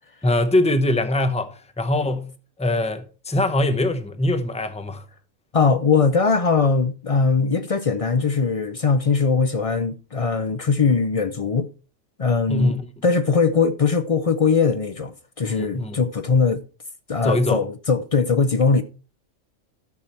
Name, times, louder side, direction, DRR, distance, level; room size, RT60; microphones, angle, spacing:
voice 1, 0.2-2.3 2.6-5.1 12.5-12.9 15.4-16.0 17.2-17.6, left 1 dB, 5° left, 0.6 m, -22 dB
voice 2, 5.5-11.7 12.2-12.7 13.0-16.6 17.1-18.8, left 5 dB, 55° left, 0.4 m, -20 dB
12.0 x 6.6 x 4.2 m
omnidirectional pair, 1.4 m